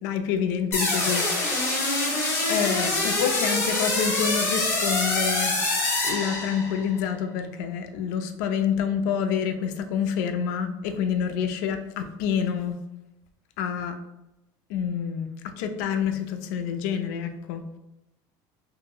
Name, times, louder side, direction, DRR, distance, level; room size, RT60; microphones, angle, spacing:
voice 1, 0.0-1.6 2.5-5.5 6.0-12.8 13.6-13.9 14.7-15.3 15.6-17.6, left 7 dB, 65° left, 7 dB, 0.4 m, -27 dB
sound 1, 0.7-6.9, left 2 dB, 25° left, 0.7 m, -25 dB
2.8 x 2.5 x 2.6 m, 0.95 s
cardioid pair, 175°, 10 cm